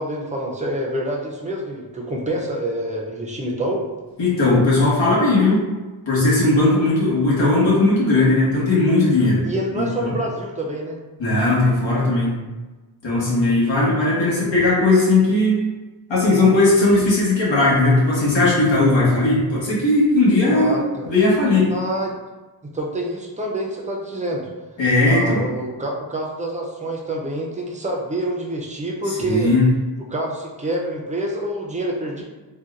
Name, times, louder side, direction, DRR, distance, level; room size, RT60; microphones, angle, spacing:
voice 1, 0.0-3.9 9.4-11.0 20.5-21.1 21.7-22.1 22.7-24.4 25.1-29.5 30.1-32.2, right 1 dB, 15° right, -1 dB, 0.4 m, -27 dB
voice 2, 4.2-5.6 6.1-9.4 9.7-10.2 11.2-12.3 13.0-15.6 16.1-20.7 21.0-21.7 24.8-25.4 29.1-29.7, left 2 dB, 80° left, -7 dB, 1.3 m, -17 dB
3.9 x 2.2 x 2.4 m, 1.2 s
wide cardioid pair, 125°, 44 cm